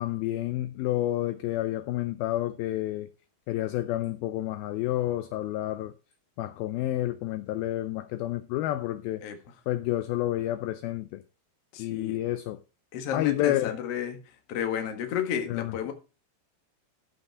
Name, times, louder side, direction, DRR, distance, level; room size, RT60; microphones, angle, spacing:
voice 1, 0.0-3.1 3.5-5.9 6.4-9.2 9.7-11.2 11.8-12.6 13.1-13.8 15.5-15.7, left 14 dB, 85° left, 2.2 m, -29 dB
voice 2, 11.7-12.2 12.9-14.2 14.5-15.9, left 8 dB, 55° left, 1.7 m, -32 dB
14.0 x 5.1 x 4.6 m
omnidirectional pair, 4.9 m